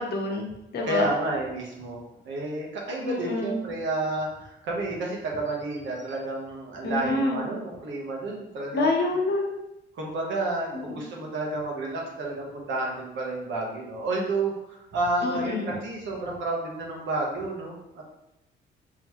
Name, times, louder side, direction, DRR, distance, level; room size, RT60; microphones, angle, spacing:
voice 1, 0.0-1.1 3.0-3.6 6.8-7.4 8.7-9.5 10.7-11.0 15.2-15.8, left 2 dB, 55° left, 0 dB, 0.9 m, -27 dB
voice 2, 0.9-2.0 2.2-9.0 9.9-18.0, right 2 dB, 70° right, -1 dB, 1.1 m, -30 dB
3.8 x 3.1 x 3.0 m, 0.88 s
cardioid pair, 90°, 20 cm